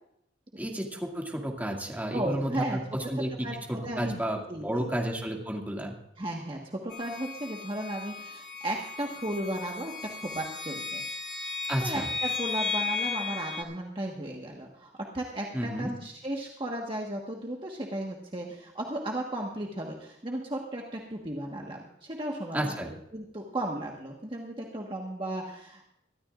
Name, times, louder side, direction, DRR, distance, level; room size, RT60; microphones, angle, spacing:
voice 1, 0.6-5.9 11.7-12.1 15.5-16.0 22.5-22.9, equal, 10° right, -1 dB, 2.2 m, -32 dB
voice 2, 2.1-2.8 3.4-4.2 4.5-4.9 6.2-11.0 11.8-25.9, right 1 dB, 30° right, -1 dB, 1.5 m, -35 dB
sound 1, 6.9-13.6, left 5 dB, 80° left, 1.5 m, -35 dB
23.5 x 13.5 x 2.5 m, 0.77 s
head